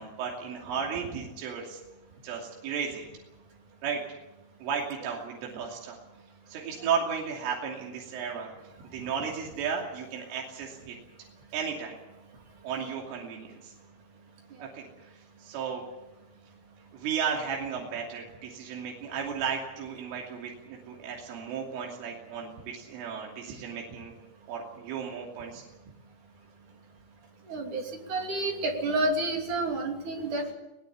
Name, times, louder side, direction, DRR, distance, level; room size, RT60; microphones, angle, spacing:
voice 1, 0.0-1.8 2.2-3.0 3.8-4.0 4.6-6.0 6.5-8.5 8.9-11.0 11.5-12.0 12.6-13.7 14.6-14.9 15.4-15.8 16.9-24.1 24.5-25.6, right 6 dB, 80° right, -1 dB, 5.4 m, -34 dB
voice 2, 27.5-30.5, right 2 dB, 45° right, 2 dB, 3.9 m, -30 dB
22.0 x 18.5 x 8.5 m, 1.0 s
omnidirectional pair, 5.6 m